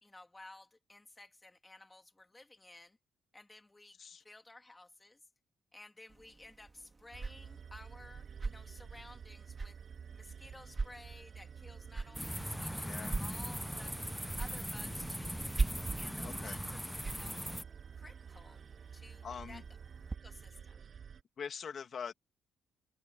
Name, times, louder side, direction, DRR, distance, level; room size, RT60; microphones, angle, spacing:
voice 1, 0.0-3.0 3.3-4.0 4.2-5.2 5.7-9.8 10.1-14.0 14.4-15.5 16.0-16.8 17.1-17.4 17.9-18.6 18.9-19.6 20.2-20.9, left 2 dB, 15° left, 2.1 m, -55 dB
sound 1, 6.1-20.2, right 3 dB, 30° right, 3.7 m, -43 dB
sound 2, 7.1-21.2, right 7 dB, 50° right, 7.4 m, -50 dB
sound 3, 12.1-17.6, equal, ahead, 0.8 m, -40 dB
voice 2, 12.8-13.2 16.2-16.6 19.2-19.6 21.4-22.1, left 6 dB, 50° left, 2.5 m, -43 dB
open air
cardioid pair, 90°, 0 cm